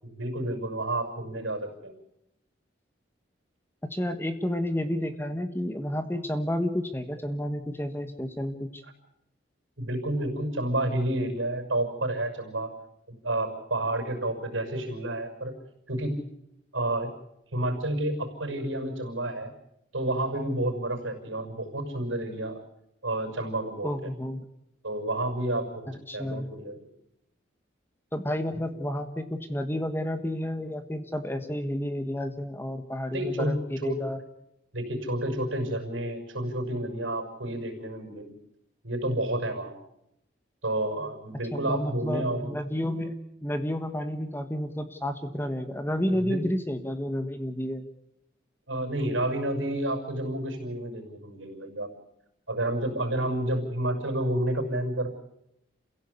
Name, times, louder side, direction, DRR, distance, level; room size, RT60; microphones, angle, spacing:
voice 1, 0.0-1.9 8.8-8.9 9.8-12.7 13.2-15.5 15.9-16.2 16.7-17.1 17.5-19.5 19.9-22.6 23.0-24.1 24.8-26.9 33.1-34.0 34.7-38.4 38.8-39.7 40.6-42.5 46.2-46.4 48.7-51.9 52.5-55.1, right 1 dB, 90° right, 4 dB, 6.1 m, -30 dB
voice 2, 3.8-8.8 23.8-24.4 26.1-26.5 28.1-34.2 41.5-47.9, equal, 10° left, 8 dB, 1.4 m, -31 dB
28.0 x 16.5 x 8.4 m, 0.83 s
head